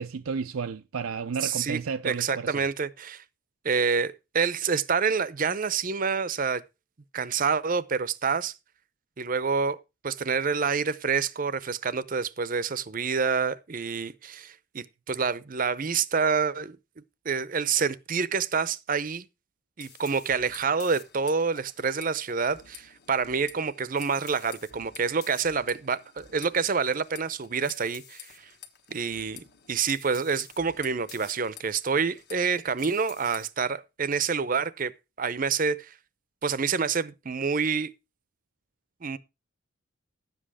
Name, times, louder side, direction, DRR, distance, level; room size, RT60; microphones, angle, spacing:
voice 1, 0.0-2.6, right 5 dB, 85° right, 0.5 m, -32 dB
voice 2, 1.4-1.8 2.0-3.2 3.6-6.6 7.1-8.5 9.2-9.8 10.0-16.8 17.2-19.2 19.8-28.4 28.9-34.9 35.2-35.9 36.4-37.9 39.0-39.2, right 5 dB, 40° right, 0.6 m, -27 dB
sound 1, 19.8-33.5, left 9 dB, 55° left, 1.3 m, -50 dB
11.0 x 7.7 x 4.8 m
head